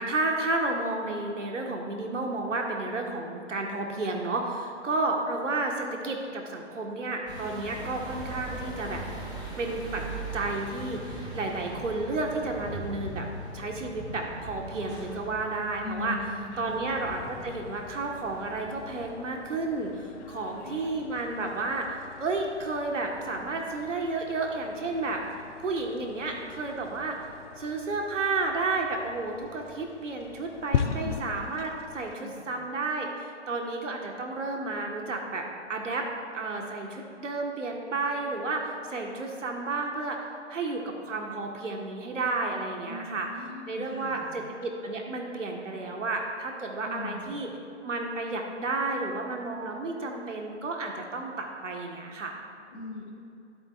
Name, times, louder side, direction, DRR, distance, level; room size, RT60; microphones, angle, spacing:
voice 1, 0.0-9.0 9.6-10.0 10.3-13.3 13.5-16.2 16.6-25.2 25.6-27.2 27.6-36.1 36.3-40.2 40.5-43.3 43.7-47.5 47.8-52.3, right 3 dB, 85° right, 1 dB, 1.7 m, -32 dB
sound 1, 7.3-19.1, right 1 dB, 10° right, 1.9 m, -40 dB
voice 2, 15.8-16.8 20.2-21.1 30.8-31.3 32.2-32.5 42.8-44.3 46.8-47.4 52.7-53.1, left 3 dB, 35° left, -2 dB, 2.0 m, -40 dB
sound 2, 16.7-32.2, left 7 dB, 75° left, 0.7 m, -40 dB
13.5 x 13.0 x 2.6 m, 2.6 s
hypercardioid pair, 145°, 36 cm